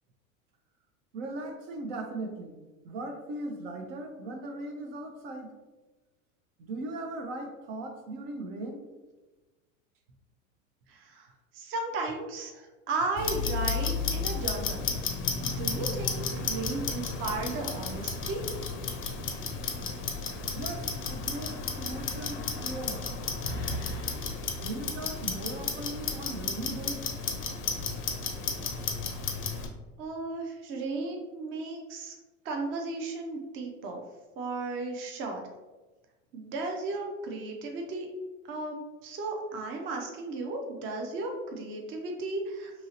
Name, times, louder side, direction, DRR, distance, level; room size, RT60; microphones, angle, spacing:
voice 1, 1.1-2.6 2.8-5.5 6.6-8.8 20.5-23.1 24.6-27.0, right 2 dB, 65° right, 3 dB, 0.7 m, -38 dB
voice 2, 10.9-11.3 11.5-15.0 15.4-18.4 30.0-32.1 32.4-34.0 34.4-35.4 36.3-38.1 38.5-42.7, right 3 dB, 30° right, 2 dB, 0.5 m, -35 dB
Clock, 13.2-29.7, left 5 dB, 30° left, 0.5 m, -33 dB
2.8 x 2.7 x 2.8 m, 1.2 s
hypercardioid pair, 100°, 41 cm